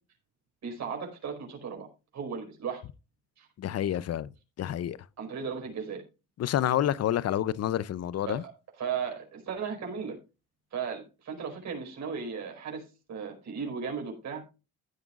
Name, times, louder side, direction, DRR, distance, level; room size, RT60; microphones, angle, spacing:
voice 1, 0.6-1.9 2.1-2.8 3.4-3.5 5.2-6.0 8.2-8.4 8.8-10.2 10.7-14.4, right 6 dB, 65° right, 4.8 m, -36 dB
voice 2, 3.6-4.3 4.6-5.0 6.4-8.4, left 11 dB, 55° left, 0.6 m, -28 dB
15.5 x 9.0 x 2.5 m
cardioid pair, 90°, 30 cm